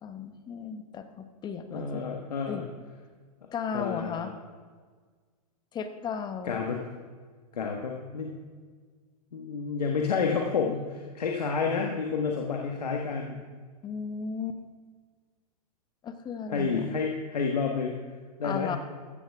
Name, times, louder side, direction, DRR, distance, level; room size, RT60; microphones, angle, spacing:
voice 1, 0.0-2.0 2.5-2.6 3.5-4.3 5.7-6.6 13.8-14.6 16.0-16.9 18.4-18.8, left 6 dB, 20° left, 9 dB, 1.0 m, -35 dB
voice 2, 1.7-2.7 3.7-4.3 6.4-6.8 7.5-8.4 9.3-13.4 16.5-17.9 18.4-18.7, left 5 dB, 90° left, 1 dB, 1.6 m, -30 dB
15.5 x 13.5 x 3.6 m, 1.5 s
hypercardioid pair, 130°, 20 cm